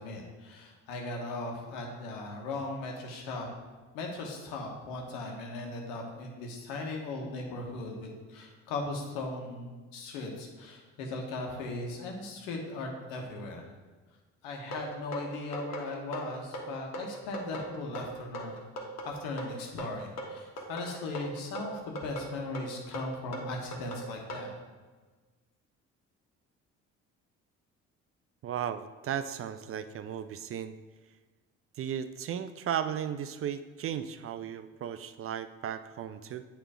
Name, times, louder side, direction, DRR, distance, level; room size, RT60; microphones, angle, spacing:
voice 1, 0.0-3.5 3.9-13.7 14.4-18.7 19.0-24.5, left 2 dB, 75° left, 1 dB, 1.3 m, -38 dB
sound 1, 14.7-24.5, right 1 dB, 45° left, 1.5 m, -39 dB
voice 2, 28.4-30.8 31.8-36.5, right 9 dB, 40° right, 12 dB, 0.4 m, -35 dB
8.6 x 3.1 x 4.9 m, 1.3 s
hypercardioid pair, 50°, 37 cm